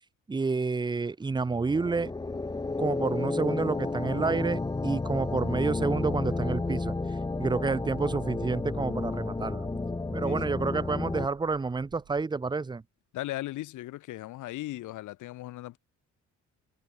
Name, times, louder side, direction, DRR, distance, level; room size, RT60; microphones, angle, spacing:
voice 1, 0.3-2.1 2.8-9.7 10.1-12.8, right 4 dB, 15° right, 0.6 m, -29 dB
sound 1, 1.5-11.3, left 3 dB, 15° left, 0.8 m, -32 dB
sound 2, 5.8-12.2, right 13 dB, 80° right, 6.3 m, -52 dB
voice 2, 13.1-15.8, left 16 dB, 80° left, 0.9 m, -37 dB
cardioid pair, 90°, 30 cm